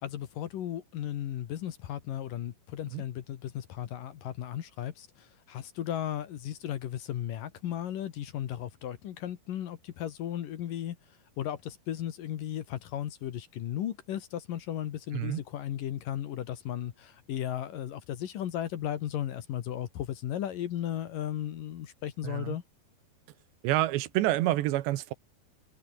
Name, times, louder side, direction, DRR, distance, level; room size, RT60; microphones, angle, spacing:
voice 1, 0.0-22.6, left 11 dB, 60° left, 2.7 m, -35 dB
voice 2, 22.2-22.6 23.6-25.1, right 15 dB, 85° right, 3.4 m, -28 dB
omnidirectional pair, 4.9 m